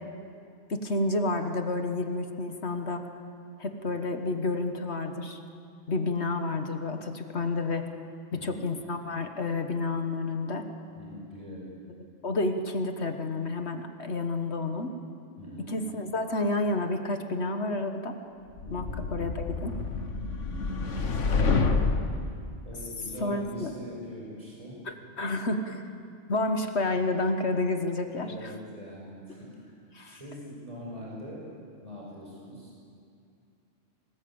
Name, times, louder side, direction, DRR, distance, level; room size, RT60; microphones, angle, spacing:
voice 1, 0.7-3.1 3.6-5.4 5.9-7.9 8.4-10.7 12.2-14.9 15.7-18.2 18.7-18.8 19.1-19.3 19.6-19.7 23.2-23.7 25.2-25.8 26.3-28.5 29.9-30.2, left 2 dB, 60° left, 6 dB, 1.6 m, -30 dB
voice 2, 8.3-8.6 11.0-11.7 15.4-15.7 18.6-19.0 20.4-20.8 22.6-24.8 28.2-31.5 31.8-32.8, equal, 25° right, -4 dB, 6.2 m, -43 dB
sound 1, 18.6-22.3, left 4 dB, 75° left, 1.6 m, -28 dB
24.5 x 19.5 x 8.8 m, 2.4 s
omnidirectional pair, 1.3 m